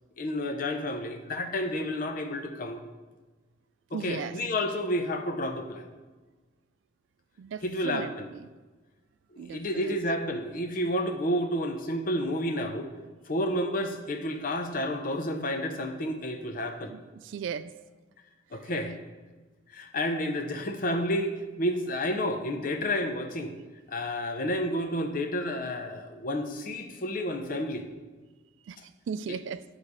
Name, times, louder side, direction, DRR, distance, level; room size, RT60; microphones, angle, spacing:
voice 1, 0.2-2.8 3.9-5.9 7.6-8.3 9.3-12.9 13.3-16.9 18.5-18.9 19.7-23.6 23.9-27.8, left 1 dB, 45° left, 5 dB, 0.7 m, -30 dB
voice 2, 3.9-4.4 7.4-8.5 9.4-10.0 16.9-17.7 28.7-29.6, right 6 dB, 75° right, 14 dB, 0.3 m, -37 dB
9.5 x 3.3 x 4.8 m, 1.3 s
head